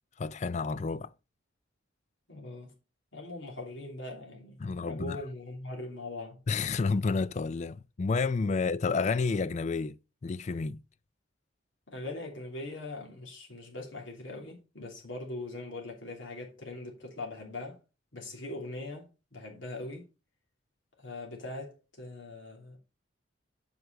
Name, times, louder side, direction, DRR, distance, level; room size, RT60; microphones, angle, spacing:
voice 1, 0.2-1.1 4.6-5.2 6.5-10.8, left 4 dB, 35° left, 0.3 m, -30 dB
voice 2, 2.3-2.7 3.1-6.4 11.9-17.8 18.1-20.1 21.0-22.8, left 2 dB, 70° left, 2.9 m, -41 dB
7.9 x 5.4 x 4.6 m
head